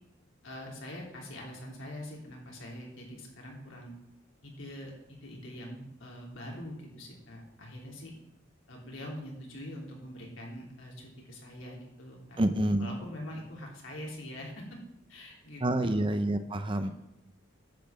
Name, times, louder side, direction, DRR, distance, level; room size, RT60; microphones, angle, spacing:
voice 1, 0.4-3.9 4.4-8.1 8.7-12.4 12.8-14.8 15.1-16.1 16.8-17.0, left 1 dB, 85° left, -2 dB, 3.3 m, -44 dB
voice 2, 12.4-12.9 15.6-16.9, right 1 dB, 25° right, 9 dB, 0.7 m, -28 dB
10.5 x 5.9 x 7.7 m, 0.86 s
head